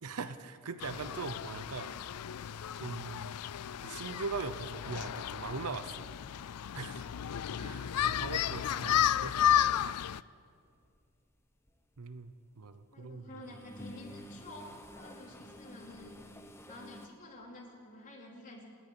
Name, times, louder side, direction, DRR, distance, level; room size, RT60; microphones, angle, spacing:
voice 1, 0.0-1.9 2.7-3.4 3.8-6.0 6.7-7.1 7.6-9.6 12.0-13.4, right 4 dB, 80° right, 11 dB, 0.8 m, -41 dB
sound 1, 0.8-10.2, left 10 dB, 90° left, 0.4 m, -33 dB
sound 2, 10.7-11.0 11.4-12.8 13.2-17.1, equal, 10° left, 1.1 m, -50 dB
voice 2, 12.9-16.2 16.7-18.6, left 1 dB, 35° left, -2 dB, 4.2 m, -50 dB
27.0 x 10.0 x 10.0 m, 2.3 s
head